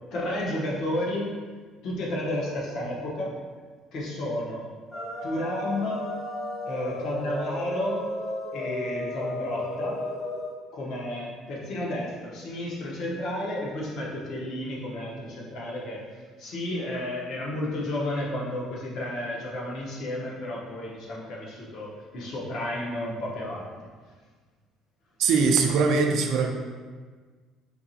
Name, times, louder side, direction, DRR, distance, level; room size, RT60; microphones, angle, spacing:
voice 1, 0.1-1.3 1.8-3.3 3.9-4.6 5.2-6.1 6.7-8.0 8.5-10.0 10.7-16.0 16.4-23.7, left 1 dB, 50° left, -4 dB, 0.8 m, -32 dB
sound 1, 4.9-10.5, left 1 dB, 25° left, 0.5 m, -33 dB
voice 2, 25.2-26.5, right 4 dB, 55° right, 4 dB, 0.4 m, -21 dB
4.5 x 2.9 x 2.7 m, 1.5 s
cardioid pair, 160°, 0 cm